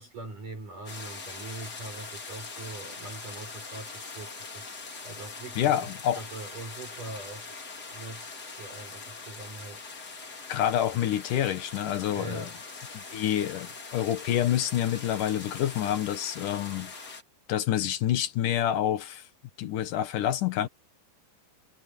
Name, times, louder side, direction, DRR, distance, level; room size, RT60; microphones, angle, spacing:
voice 1, 0.0-5.7 6.2-7.5 7.9-8.3 8.6-9.9 10.2-10.3 12.1-12.6 14.3-14.4, right 2 dB, 45° right, 7.9 m, -42 dB
sound 1, 0.9-17.2, left 4 dB, 30° left, 2.1 m, -42 dB
voice 2, 5.6-6.2 10.5-12.5 12.9-16.9 17.5-19.3 19.6-20.7, left 11 dB, 70° left, 2.1 m, -27 dB
omnidirectional pair, 5.4 m